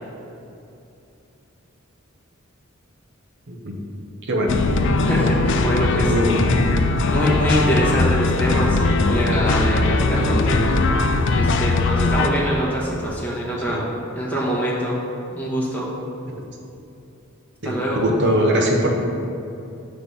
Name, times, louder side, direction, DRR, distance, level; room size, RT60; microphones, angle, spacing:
voice 1, 3.5-3.8 4.2-4.6 6.1-6.5 7.5-7.7 8.5-8.6 13.7-13.8 16.3-16.4 17.6-18.9, equal, 55° right, 1 dB, 0.9 m, -22 dB
sound 1, 4.5-12.3, left 3 dB, 60° left, 0.4 m, -20 dB
voice 2, 5.1-6.1 7.1-10.8 11.3-13.9 14.1-15.0 15.3-15.9 17.6-18.1, equal, 10° left, -7 dB, 1.2 m, -24 dB
7.9 x 3.3 x 5.4 m, 2.8 s
head